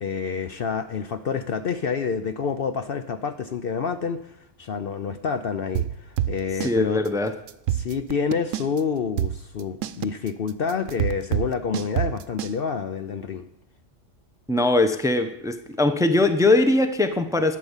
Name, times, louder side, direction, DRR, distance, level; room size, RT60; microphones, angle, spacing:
voice 1, 0.0-7.0 7.7-13.5, left 6 dB, 55° left, 10 dB, 0.8 m, -28 dB
sound 1, 5.8-6.8 7.1-7.2 7.5-8.8 9.2-12.6, right 11 dB, 85° right, 1.0 m, -26 dB
voice 2, 6.6-7.3 14.5-17.6, left 2 dB, 5° right, 8 dB, 0.7 m, -21 dB
11.5 x 8.6 x 7.2 m, 0.77 s
omnidirectional pair, 1.3 m